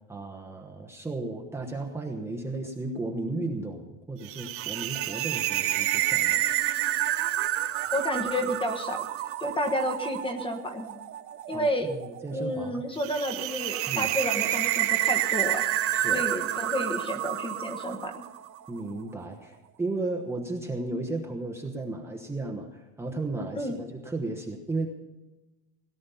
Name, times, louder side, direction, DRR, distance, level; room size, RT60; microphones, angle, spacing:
voice 1, 0.1-6.5 11.5-12.8 13.9-14.1 15.9-16.2 18.7-24.9, right 2 dB, 5° right, 0 dB, 1.1 m, -34 dB
sound 1, 4.2-18.6, right 13 dB, 35° right, 0.8 m, -29 dB
voice 2, 7.9-9.1 9.4-11.0 11.5-11.9 12.3-15.6 16.1-18.2 23.5-23.8, equal, 15° left, 6 dB, 1.3 m, -30 dB
18.0 x 10.5 x 5.7 m, 1.1 s
supercardioid pair, 150°, 39 cm